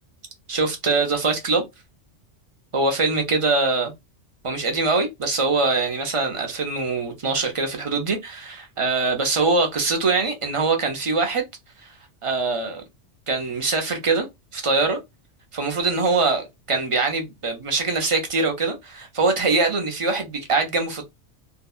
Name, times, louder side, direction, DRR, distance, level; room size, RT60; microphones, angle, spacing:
voice 1, 0.5-1.6 2.7-3.9 4.4-11.4 12.2-12.8 13.3-14.3 14.5-15.0 15.5-21.1, right 3 dB, 35° right, 0.6 m, -23 dB
2.7 x 2.1 x 2.3 m
omnidirectional pair, 1.2 m